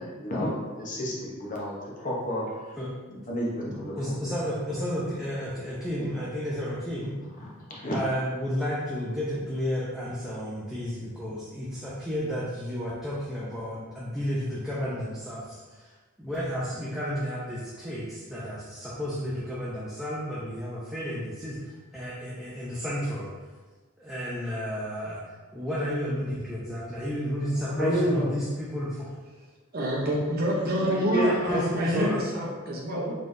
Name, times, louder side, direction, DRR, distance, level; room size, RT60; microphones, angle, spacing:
voice 1, 0.0-2.8 3.3-4.2 7.4-8.0 27.7-28.3 30.6-32.3 32.7-33.0, equal, 40° left, -4 dB, 0.8 m, -30 dB
voice 2, 3.7-7.1 7.9-23.3 24.0-29.1 31.2-32.2, equal, ahead, -8 dB, 0.5 m, -32 dB
voice 3, 29.7-33.1, equal, 45° right, -3 dB, 0.7 m, -27 dB
3.9 x 3.2 x 2.6 m, 1.3 s
head